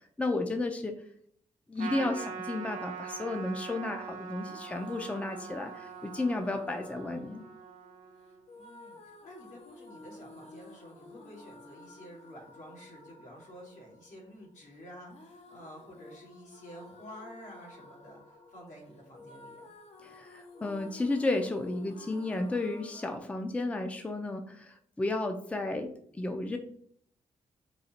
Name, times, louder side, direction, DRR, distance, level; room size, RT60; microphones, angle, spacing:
voice 1, 0.2-1.0 1.7-7.4 20.0-26.6, left 2 dB, 10° left, 5 dB, 0.4 m, -33 dB
Trumpet, 1.8-8.5, right 6 dB, 75° right, 0.8 m, -43 dB
sound 1, 4.4-23.2, left 2 dB, 55° left, 0.7 m, -53 dB
voice 2, 8.6-19.6, equal, 80° left, -2 dB, 1.9 m, -50 dB
4.0 x 2.8 x 4.2 m, 0.62 s
wide cardioid pair, 145°, 13 cm